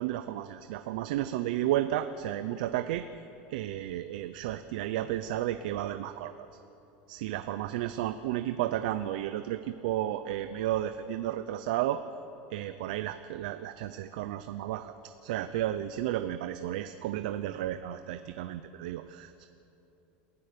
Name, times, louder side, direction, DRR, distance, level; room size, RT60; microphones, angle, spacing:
voice 1, 0.0-3.0 3.5-6.5 7.1-12.0 12.5-14.9 15.2-19.5, right 13 dB, 65° right, 10 dB, 0.7 m, -32 dB
28.0 x 15.0 x 6.9 m, 3.0 s
supercardioid pair, 180°, 5 cm